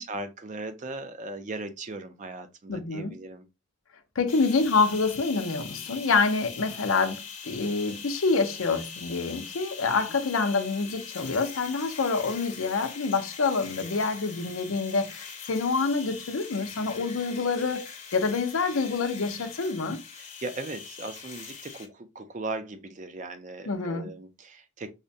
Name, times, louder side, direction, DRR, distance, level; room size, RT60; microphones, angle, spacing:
voice 1, 0.0-3.4 20.2-24.9, right 2 dB, 40° right, 0.5 m, -38 dB
voice 2, 2.7-3.1 4.2-20.0 23.7-24.1, left 4 dB, 85° left, 0.6 m, -27 dB
sound 1, 4.3-21.9, left 6 dB, 35° left, 0.7 m, -42 dB
4.9 x 2.2 x 2.6 m
head